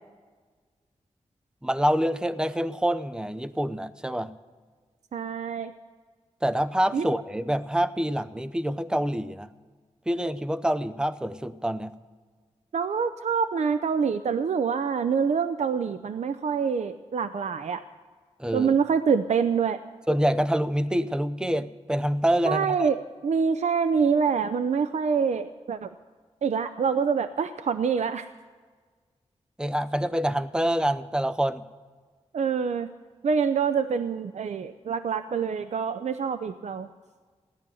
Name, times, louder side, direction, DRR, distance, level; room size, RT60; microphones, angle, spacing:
voice 1, 1.6-4.4 6.4-9.5 10.1-11.9 18.4-18.8 20.1-22.9 29.6-31.6, equal, 5° right, 12 dB, 0.7 m, -26 dB
voice 2, 5.1-5.7 6.9-7.1 12.7-17.8 18.5-19.8 22.5-25.9 26.4-28.3 32.3-32.9 33.2-36.9, right 6 dB, 75° right, 11 dB, 0.6 m, -26 dB
16.5 x 11.0 x 7.0 m, 1.5 s
wide cardioid pair, 80°, 12 cm